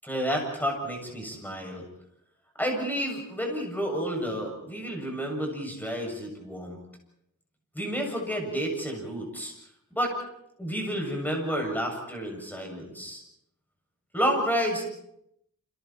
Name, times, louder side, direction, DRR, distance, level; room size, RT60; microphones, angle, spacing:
voice 1, 0.0-1.8 2.6-6.8 7.7-9.5 9.9-10.2 10.6-13.2 14.1-14.8, equal, 5° left, 1 dB, 7.3 m, -30 dB
29.5 x 27.5 x 4.5 m, 0.78 s
wide cardioid pair, 180°, 33 cm